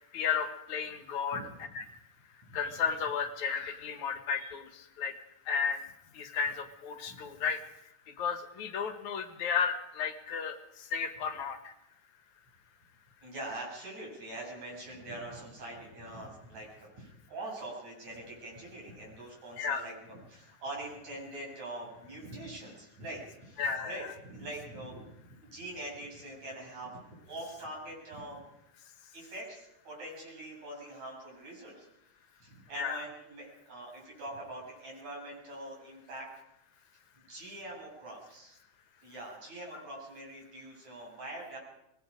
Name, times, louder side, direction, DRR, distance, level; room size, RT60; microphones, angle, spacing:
voice 1, 0.1-1.4 1.7-1.8 2.5-5.2 5.5-5.9 6.1-7.6 8.1-11.7 19.6-19.8 23.6-24.0 32.8-33.0, left 6 dB, 70° left, 8 dB, 2.9 m, -33 dB
voice 2, 13.2-25.1 25.4-28.4 29.1-31.9 32.4-36.3 37.1-38.6 39.0-41.6, right 1 dB, 65° right, -3 dB, 9.3 m, -44 dB
24.5 x 21.0 x 5.2 m, 0.89 s
omnidirectional pair, 3.4 m